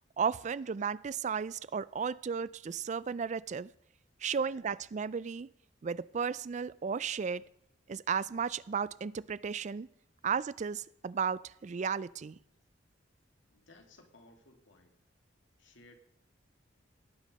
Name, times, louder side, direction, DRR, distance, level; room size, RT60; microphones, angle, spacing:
voice 1, 0.2-3.7 4.2-5.5 5.8-7.5 7.9-9.9 10.2-12.4, right 6 dB, 40° right, 20 dB, 0.3 m, -34 dB
voice 2, 13.5-14.9 15.6-16.0, left 2 dB, 75° left, 5 dB, 2.2 m, -59 dB
18.5 x 6.4 x 5.2 m, 0.77 s
head